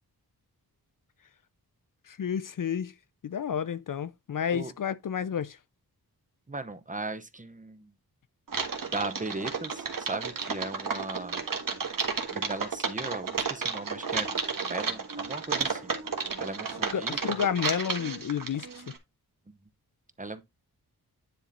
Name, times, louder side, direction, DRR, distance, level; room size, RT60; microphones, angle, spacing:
voice 1, 2.1-2.9 3.2-5.6 16.9-18.8, left 8 dB, 55° left, 0.5 m, -31 dB
voice 2, 6.5-7.9 8.9-11.4 12.3-14.4 14.7-16.0 16.4-17.4 19.5-19.6 20.2-20.4, right 2 dB, 20° right, 0.9 m, -37 dB
Typing, 8.5-19.0, right 5 dB, 60° right, 1.7 m, -32 dB
10.5 x 3.7 x 4.2 m
wide cardioid pair, 105°, 38 cm